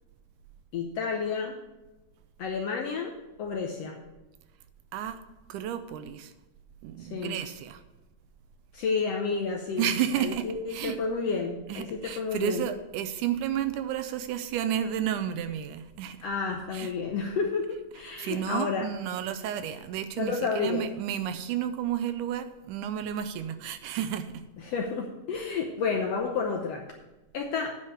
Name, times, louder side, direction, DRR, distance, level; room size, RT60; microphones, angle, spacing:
voice 1, 0.7-1.6 2.4-4.0 7.0-7.4 8.7-9.9 10.2-12.7 16.2-18.9 20.2-20.9 24.6-26.8 27.3-27.8, left 5 dB, 70° left, 1 dB, 1.5 m, -31 dB
voice 2, 5.5-6.3 6.8-7.8 9.8-11.0 11.7-16.3 16.7-16.9 18.2-24.4, right 10 dB, 80° right, 10 dB, 2.0 m, -31 dB
9.7 x 5.0 x 8.0 m, 1.1 s
omnidirectional pair, 3.8 m